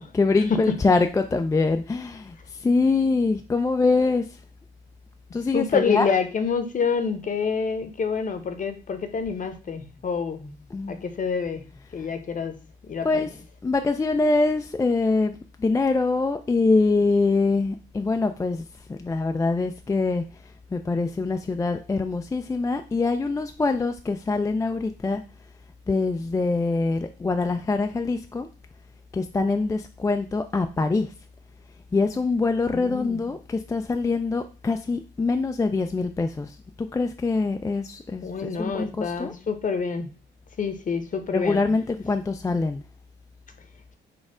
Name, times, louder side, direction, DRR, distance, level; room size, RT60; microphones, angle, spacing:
voice 1, 0.1-4.2 5.3-6.1 10.7-11.0 13.0-15.3 15.6-18.6 18.9-20.2 20.7-25.2 25.9-28.5 29.1-31.1 31.9-39.4 41.3-42.8, left 3 dB, 15° left, 6 dB, 0.3 m, -24 dB
voice 2, 5.5-10.5 10.9-12.5 12.8-13.3 32.7-33.2 38.2-40.1 40.6-41.6, left 5 dB, 40° left, 8 dB, 0.8 m, -27 dB
4.3 x 2.3 x 4.7 m, 0.34 s
cardioid pair, 90°, 20 cm